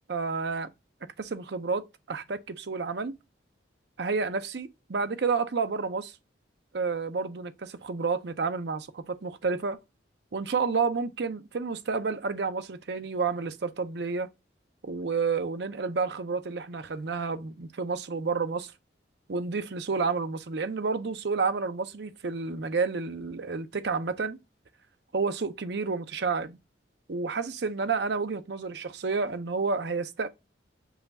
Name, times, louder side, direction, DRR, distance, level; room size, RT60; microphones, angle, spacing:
voice 1, 0.1-0.7 1.2-3.1 4.0-6.1 6.7-9.8 10.3-14.3 14.8-18.7 19.3-24.4 25.1-26.6 27.1-30.3, right 4 dB, 60° right, 0.6 m, -30 dB
5.6 x 2.3 x 4.0 m
head